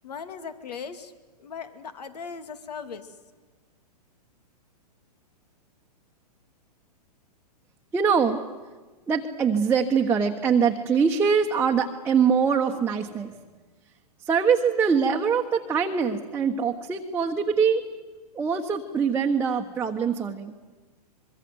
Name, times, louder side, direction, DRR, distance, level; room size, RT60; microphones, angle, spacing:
voice 1, 0.0-1.1 1.4-3.1, left 6 dB, 75° left, 10 dB, 2.5 m, -38 dB
voice 2, 7.9-8.4 9.1-13.3 14.2-17.8 18.3-20.5, right 6 dB, 10° right, 0 dB, 1.2 m, -23 dB
25.0 x 22.5 x 8.0 m, 1.3 s
hypercardioid pair, 130°, 21 cm